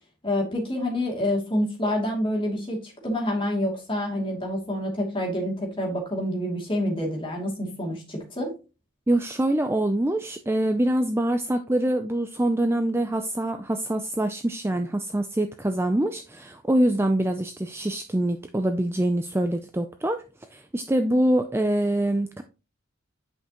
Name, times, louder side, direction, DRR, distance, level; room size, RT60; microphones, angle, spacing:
voice 1, 0.2-8.5, left 1 dB, 25° left, -1 dB, 2.7 m, -27 dB
voice 2, 9.1-20.2 20.5-22.4, right 1 dB, 10° right, 7 dB, 0.4 m, -24 dB
10.0 x 5.6 x 3.0 m, 0.31 s
head